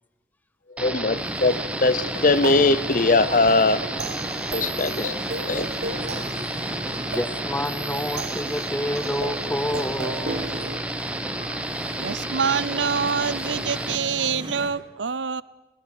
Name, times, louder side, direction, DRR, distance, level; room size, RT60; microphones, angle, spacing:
voice 1, 0.8-3.9 4.5-5.1 5.5-5.7, left 3 dB, 45° left, 16 dB, 0.7 m, -20 dB
sound 1, 0.8-14.0, right 1 dB, 5° right, 1.0 m, -31 dB
sound 2, 1.1-14.7, right 1 dB, 30° right, 3.1 m, -37 dB
sound 3, 2.4-10.8, right 3 dB, 65° right, 1.2 m, -35 dB
voice 2, 7.0-10.5, left 1 dB, 10° left, 16 dB, 0.6 m, -29 dB
voice 3, 12.0-15.4, right 6 dB, 85° right, 18 dB, 0.7 m, -26 dB
19.0 x 17.5 x 9.1 m, 1.1 s
head